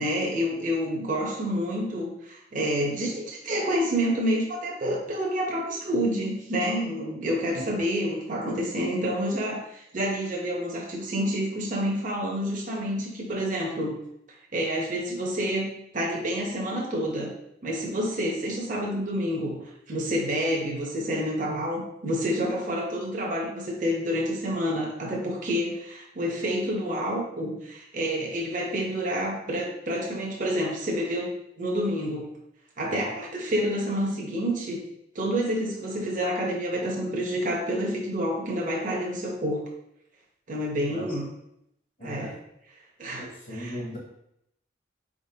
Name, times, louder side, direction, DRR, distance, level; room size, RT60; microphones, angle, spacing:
voice 1, 0.0-14.0 14.5-17.3 17.6-19.6 19.9-32.3 32.8-34.8 35.1-39.6 40.5-41.3 42.0-42.3 43.0-43.8, equal, 45° right, -2 dB, 0.8 m, -28 dB
voice 2, 42.0-42.3 43.2-44.0, equal, 50° left, -5 dB, 1.1 m, -37 dB
4.3 x 3.7 x 2.8 m, 0.77 s
head